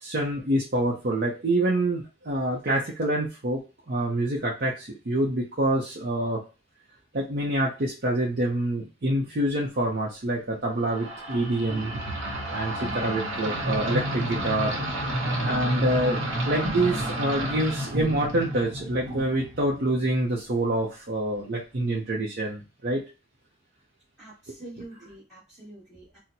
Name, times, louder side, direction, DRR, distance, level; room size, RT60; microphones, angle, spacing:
voice 1, 0.0-6.4 7.1-11.9 12.5-14.8 15.4-23.0 24.5-24.6, right 1 dB, 50° right, -3 dB, 0.6 m, -26 dB
sound 1, 10.9-20.2, right 1 dB, 85° right, 0.9 m, -30 dB
voice 2, 24.2-26.2, right 2 dB, ahead, -11 dB, 1.2 m, -46 dB
4.2 x 2.1 x 2.7 m, 0.30 s
head